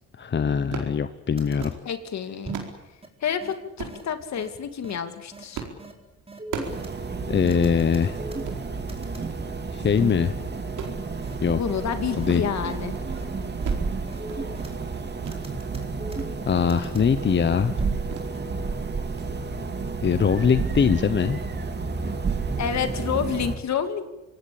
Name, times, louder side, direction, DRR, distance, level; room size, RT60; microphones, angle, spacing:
voice 1, 0.2-1.7 7.3-8.2 9.7-10.3 11.4-11.6 12.2-12.4 16.4-17.7 20.0-21.4, left 7 dB, 35° left, 12 dB, 1.0 m, -22 dB
sound 1, 0.7-1.0 1.4-1.8 2.2-2.8 3.8-4.0 4.7-5.0 5.5-5.8 6.1-6.9 7.2-7.3 7.6-7.8 8.3-8.6 9.2-9.5 9.8-10.2 10.6-11.8 12.1-12.5 12.8-13.1 13.4-13.9 14.2-14.6 15.2-15.4 15.8-16.3 16.6-16.7 17.1-17.4 18.1-18.3 18.6-18.8 19.2-19.3, right 6 dB, 85° right, 4.5 m, -38 dB
sound 2, 1.1-1.2 1.4-1.7 2.4-2.7 3.0-3.1 3.4-3.5 3.9-4.0 4.4-4.5 4.8-5.0 5.3-5.4 5.8-5.9 6.3-6.9 7.5-8.6 8.9-9.3 10.0-10.3 10.8-10.9 11.2-11.3 11.7-11.8 12.2-12.3 12.6-12.8 13.1-13.2 13.6-13.7 14.1-14.7 15.3-16.4 16.7-17.1 17.8-18.1 18.3-18.4, right 3 dB, 20° right, 4.3 m, -37 dB
voice 2, 1.8-2.6 3.2-5.6 11.6-13.0 22.6-24.1, left 8 dB, 65° left, 9 dB, 2.7 m, -29 dB
sound 3, 6.6-23.6, right 4 dB, 35° right, 2.8 m, -31 dB
26.0 x 18.5 x 8.8 m, 0.98 s
cardioid pair, 90°, 30 cm